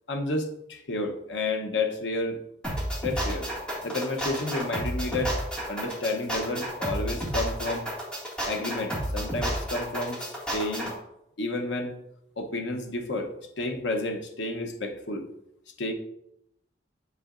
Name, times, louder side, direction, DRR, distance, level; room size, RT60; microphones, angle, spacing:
voice 1, 0.1-2.4 3.0-3.5 3.8-5.4 5.7-7.9 8.5-10.9 11.4-11.9 12.4-15.3 15.8-15.9, left 2 dB, 75° left, 4 dB, 0.8 m, -31 dB
sound 1, 2.6-10.9, right 1 dB, 5° left, 2.0 m, -31 dB
8.2 x 5.7 x 2.5 m, 0.79 s
head